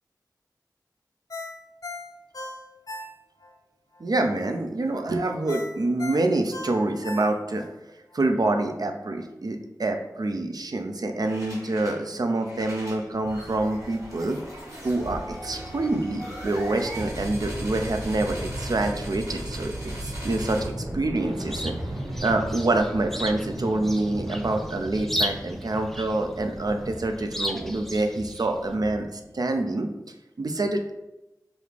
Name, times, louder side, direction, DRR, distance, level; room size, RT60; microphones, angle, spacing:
Ringtone, 1.3-3.5 3.9-4.0 5.5-7.7 8.1-8.2, left 2 dB, 55° left, 0.5 m, -37 dB
voice 1, 4.0-7.7 8.1-14.4 14.8-19.7 20.0-20.7 20.9-21.7 22.2-29.9 30.4-30.9, right 2 dB, 65° right, 5 dB, 0.5 m, -26 dB
sound 1, 11.2-12.0 12.4-29.3, right 1 dB, 45° right, 1.3 m, -36 dB
Chirp tweet, 21.1-28.8, equal, 5° left, 0.4 m, -36 dB
5.2 x 2.4 x 3.2 m, 0.98 s
wide cardioid pair, 40°, 7 cm